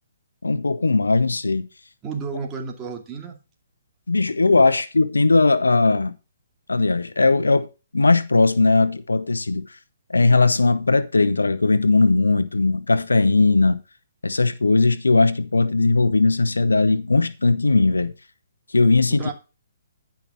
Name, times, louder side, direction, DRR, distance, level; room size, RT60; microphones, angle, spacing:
voice 1, 0.4-1.7 4.1-6.1 6.7-7.7 7.9-9.7 10.1-13.8 14.2-18.1 18.7-19.3, left 3 dB, 90° left, 0.9 m, -18 dB
voice 2, 2.0-3.4 19.1-19.3, right 5 dB, 20° right, 2.3 m, -32 dB
11.0 x 5.8 x 5.8 m
hypercardioid pair, 140°, 0 cm